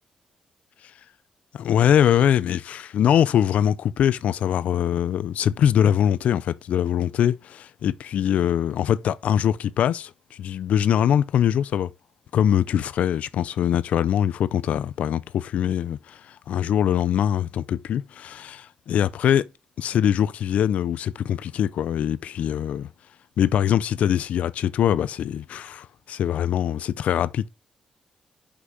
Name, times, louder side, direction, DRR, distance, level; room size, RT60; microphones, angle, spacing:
voice 1, 1.5-11.9 12.3-19.5 19.8-22.9 23.4-27.5, left 10 dB, 75° left, 0.5 m, -23 dB
6.1 x 6.0 x 5.4 m
wide cardioid pair, 140°, 2 cm